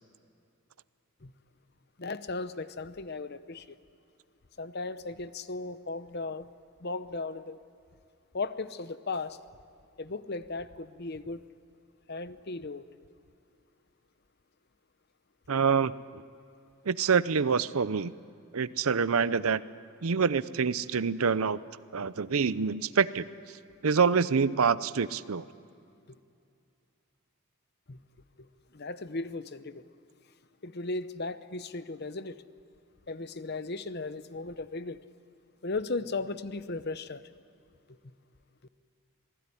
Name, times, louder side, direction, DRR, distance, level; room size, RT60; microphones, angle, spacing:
voice 1, 2.0-3.8 4.6-6.5 6.8-7.6 8.3-9.4 10.0-11.4 12.1-12.9 26.1-26.2 27.9-28.0 28.4-28.5 28.7-29.8 30.6-32.4 33.1-35.0 35.6-37.3, left 3 dB, 45° left, 13 dB, 0.8 m, -36 dB
voice 2, 15.5-15.9 16.9-18.1 18.5-19.6 20.0-21.6 21.9-23.2 23.8-25.5, right 5 dB, 75° right, 16 dB, 0.6 m, -26 dB
27.0 x 20.0 x 9.9 m, 2.5 s
head